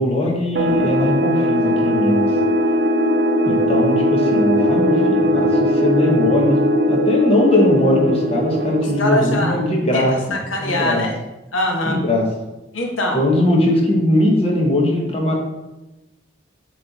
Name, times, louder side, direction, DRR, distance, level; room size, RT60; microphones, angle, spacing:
voice 1, 0.0-2.3 3.5-6.6 6.9-10.2 10.6-11.0 11.9-12.3 13.1-15.3, left 1 dB, 30° left, -1 dB, 1.0 m, -19 dB
sound 1, 0.5-9.9, equal, 65° right, 0.6 m, -19 dB
voice 2, 9.0-9.6 9.9-10.0 10.3-11.1 11.5-12.0 12.7-13.2, left 1 dB, 90° left, 1 dB, 1.0 m, -22 dB
7.4 x 3.2 x 4.0 m, 1.0 s
head